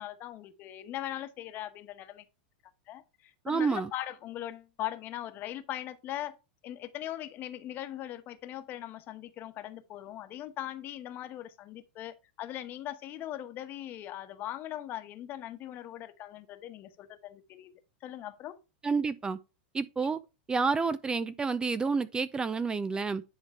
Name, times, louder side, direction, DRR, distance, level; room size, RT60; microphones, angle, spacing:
voice 1, 0.0-2.2 2.9-6.4 6.6-17.7 18.0-18.6, left 13 dB, 40° left, 1.1 m, -40 dB
voice 2, 3.4-3.9 18.8-19.4 19.7-20.2 20.5-23.2, right 4 dB, 15° right, 0.5 m, -29 dB
10.0 x 3.8 x 4.6 m
hypercardioid pair, 115°, 5 cm